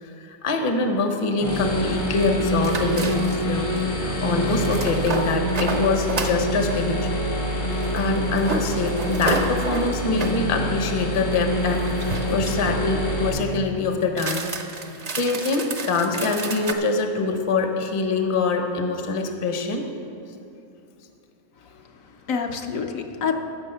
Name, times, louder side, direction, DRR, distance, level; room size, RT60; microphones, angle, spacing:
voice 1, 0.0-3.7 4.0-7.1 7.9-14.6 14.9-19.9, left 3 dB, 30° left, 4 dB, 0.7 m, -24 dB
sound 1, 1.4-13.3, equal, 90° left, 2.2 m, -26 dB
sound 2, 2.6-3.6 4.5-6.4 7.7-10.4 11.6-12.8 14.1-16.7, right 3 dB, 40° right, 0.6 m, -31 dB
voice 2, 21.7-23.3, left 6 dB, 65° left, 3 dB, 1.1 m, -28 dB
15.0 x 6.3 x 5.6 m, 2.7 s
omnidirectional pair, 1.6 m